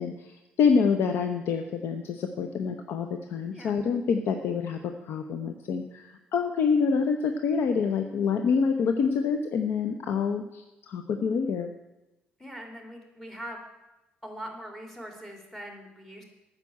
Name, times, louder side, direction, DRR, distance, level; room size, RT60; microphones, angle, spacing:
voice 1, 0.0-11.7, left 5 dB, 70° left, 6 dB, 0.8 m, -27 dB
voice 2, 12.4-13.6 14.2-16.2, equal, 5° left, 2 dB, 2.9 m, -42 dB
9.2 x 6.8 x 8.4 m, 1.0 s
cardioid pair, 85°, 4 cm